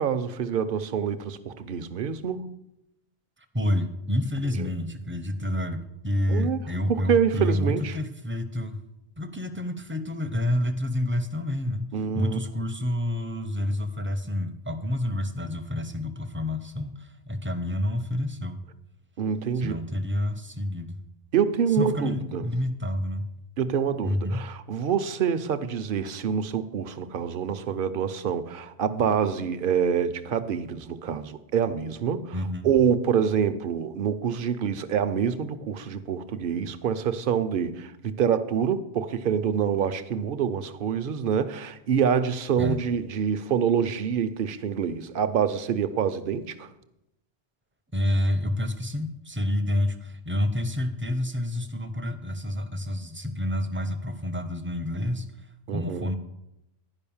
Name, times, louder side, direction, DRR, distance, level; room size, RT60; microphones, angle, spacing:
voice 1, 0.0-2.4 4.5-4.7 6.3-8.0 11.9-12.4 19.2-19.8 21.3-22.5 23.6-46.7 55.7-56.1, right 7 dB, 60° right, 0.8 m, -26 dB
voice 2, 3.5-8.8 9.2-18.6 19.6-21.0 21.8-23.3 24.0-24.4 32.3-32.7 42.6-42.8 47.9-55.3 55.7-56.2, left 1 dB, 15° right, 0.6 m, -28 dB
11.0 x 5.3 x 7.0 m
omnidirectional pair, 1.1 m